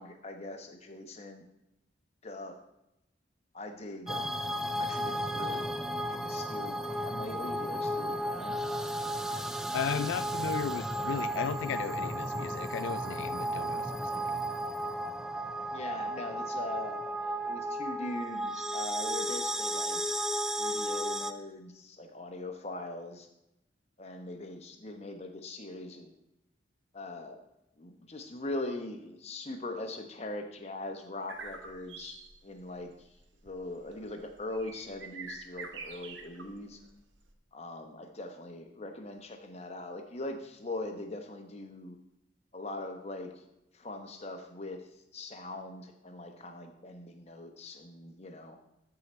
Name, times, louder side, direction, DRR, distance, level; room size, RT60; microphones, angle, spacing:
voice 1, 0.0-1.5 2.2-2.6 3.5-5.7 6.1-8.6 15.7-20.0 20.6-23.3 24.0-26.1 26.9-27.4 27.8-32.2 32.4-32.9 33.4-36.8 37.5-42.0 42.5-43.4 43.7-44.8 45.1-48.6, left 2 dB, 35° left, 4 dB, 1.0 m, -41 dB
sound 1, 4.1-21.3, right 1 dB, ahead, 0.3 m, -34 dB
voice 2, 9.7-14.2, left 7 dB, 75° left, 11 dB, 0.3 m, -35 dB
sound 2, 31.3-37.3, right 4 dB, 75° right, 1.0 m, -46 dB
13.0 x 4.9 x 4.3 m, 0.87 s
head